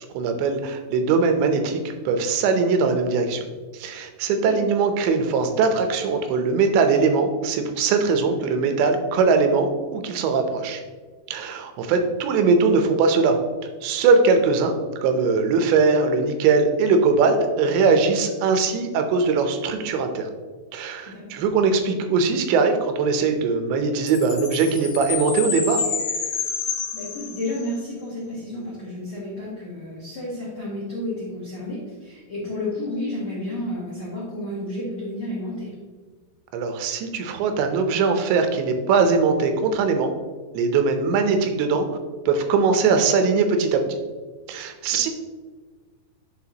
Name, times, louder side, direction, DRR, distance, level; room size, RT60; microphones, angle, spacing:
voice 1, 0.1-3.4 3.7-10.8 11.3-13.4 13.8-14.7 15.0-20.3 20.7-25.8 36.5-40.1 40.5-41.9 42.3-43.8 44.5-45.1, right 4 dB, 90° right, 6 dB, 3.0 m, -21 dB
voice 2, 21.1-21.4 26.9-35.7 44.9-45.1, left 1 dB, 85° left, -7 dB, 1.1 m, -31 dB
Chime, 24.1-27.8, left 5 dB, 60° left, 2.4 m, -29 dB
10.0 x 4.5 x 2.9 m, 1.4 s
omnidirectional pair, 5.0 m